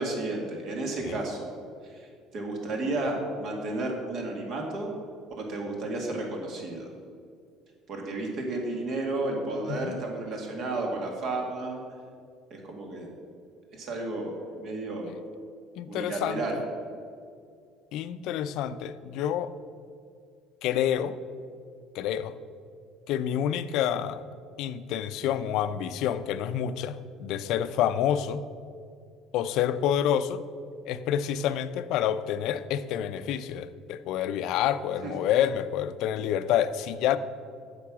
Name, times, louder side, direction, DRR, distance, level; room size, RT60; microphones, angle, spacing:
voice 1, 0.0-1.5 2.3-4.9 5.4-6.9 7.9-11.8 12.5-13.1 13.7-14.3 14.6-15.1 15.9-16.6 35.0-35.1, right 2 dB, 55° right, 1 dB, 2.0 m, -32 dB
voice 2, 9.7-10.0 15.1-15.2 15.8-16.4 17.9-19.5 20.6-21.2 21.9-22.4 23.1-24.2 24.6-28.4 29.3-30.4 30.8-37.2, left 10 dB, 70° left, 12 dB, 0.5 m, -28 dB
8.4 x 6.6 x 6.1 m, 2.3 s
cardioid pair, 110°, 0 cm